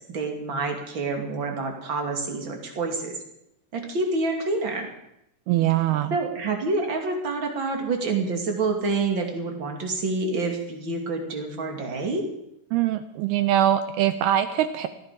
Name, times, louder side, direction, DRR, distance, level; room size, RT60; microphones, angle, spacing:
voice 1, 0.1-3.1 3.7-4.9 6.1-12.2, right 3 dB, 35° right, 2 dB, 2.4 m, -27 dB
voice 2, 5.5-6.2 12.7-14.9, right 12 dB, 80° right, 10 dB, 2.3 m, -22 dB
19.0 x 14.5 x 5.3 m, 0.81 s
omnidirectional pair, 5.3 m